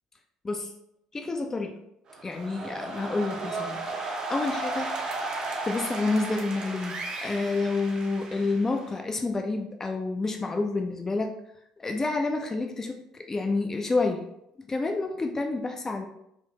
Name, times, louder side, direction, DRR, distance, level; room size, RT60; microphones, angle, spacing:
voice 1, 1.1-1.8 2.2-5.0 5.6-11.4 11.8-14.3 14.6-16.1, left 3 dB, 20° left, 4 dB, 0.3 m, -29 dB
sound 1, 2.1-9.0, right 2 dB, 40° right, 0.6 m, -34 dB
3.4 x 2.6 x 2.9 m, 0.78 s
figure-of-eight pair, 55°, 2 cm